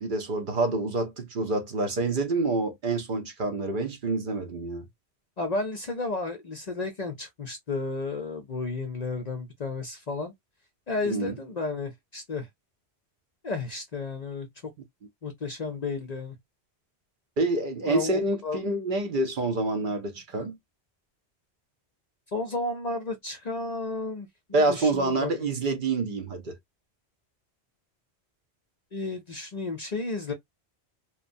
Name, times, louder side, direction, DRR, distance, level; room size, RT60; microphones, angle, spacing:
voice 1, 0.0-4.9 11.1-11.4 17.4-20.6 24.5-26.6, right 2 dB, 55° right, 0.7 m, -27 dB
voice 2, 5.4-10.3 10.9-12.5 13.4-14.5 15.2-16.4 17.8-18.6 22.3-24.3 24.7-25.3 28.9-30.3, left 3 dB, 50° left, 0.6 m, -32 dB
2.9 x 2.1 x 2.5 m
omnidirectional pair, 1.1 m